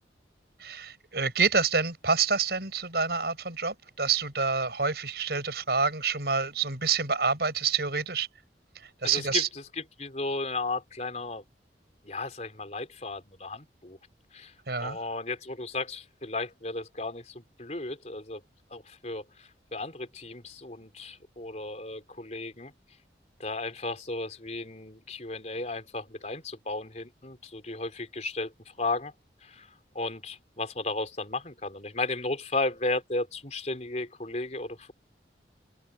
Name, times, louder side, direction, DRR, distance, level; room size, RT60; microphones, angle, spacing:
voice 1, 0.6-8.3 9.0-9.5 14.7-15.0, right 5 dB, 65° right, 6.2 m, -27 dB
voice 2, 9.0-11.4 12.0-14.0 14.3-14.5 14.8-18.4 18.7-22.7 23.4-29.1 29.4-29.7 29.9-34.9, left 2 dB, 40° left, 4.1 m, -34 dB
open air
head